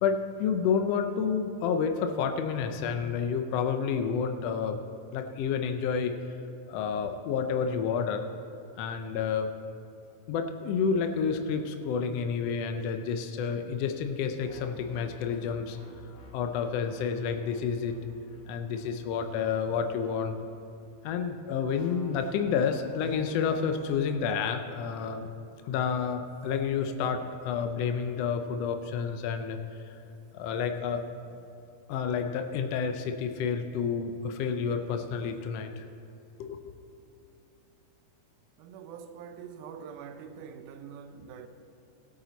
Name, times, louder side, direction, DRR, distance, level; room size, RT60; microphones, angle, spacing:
voice 1, 0.0-4.8 5.1-6.1 6.7-8.2 8.8-9.5 10.3-15.8 16.3-18.0 18.5-20.3 21.0-25.3 25.6-29.6 30.3-31.0 31.9-35.9 36.4-36.6, left 6 dB, 85° left, 1.4 m, -29 dB
sound 1, 14.4-21.0 21.7-24.0, left 1 dB, 70° left, 3.1 m, -52 dB
voice 2, 38.6-41.5, right 7 dB, 80° right, 2.1 m, -44 dB
18.0 x 8.5 x 4.0 m
omnidirectional pair, 3.6 m